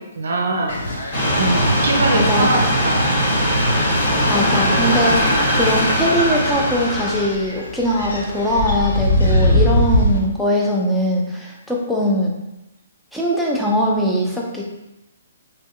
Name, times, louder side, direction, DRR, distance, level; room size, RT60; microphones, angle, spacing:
voice 1, 0.2-0.7 1.3-2.9 3.4-3.6, right 2 dB, 70° right, 1 dB, 0.5 m, -22 dB
sound 1, 0.7-10.2, left 1 dB, 65° left, 0.7 m, -23 dB
sound 2, 1.1-7.3, equal, 45° left, 1.4 m, -19 dB
voice 2, 2.1-2.5 4.3-12.3 13.1-14.7, equal, ahead, -4 dB, 0.5 m, -21 dB
3.0 x 2.7 x 2.3 m, 0.94 s
figure-of-eight pair, 135°, 0 cm